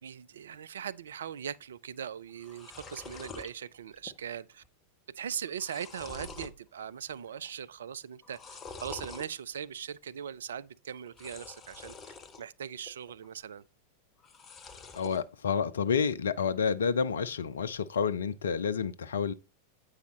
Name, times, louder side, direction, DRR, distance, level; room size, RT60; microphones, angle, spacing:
voice 1, 0.0-4.6 5.2-13.6, right 8 dB, 65° right, 0.3 m, -40 dB
sound 1, 2.0-2.1 2.3-3.5 4.0-4.4 4.6-4.7 5.3-6.6 7.0-7.5 8.2-9.3 11.1-12.4 12.8-13.5 14.2-15.2, left 4 dB, 25° left, 0.7 m, -46 dB
voice 2, 14.9-19.3, left 6 dB, 65° left, 0.5 m, -29 dB
8.2 x 4.8 x 3.0 m
figure-of-eight pair, 90°, 0 cm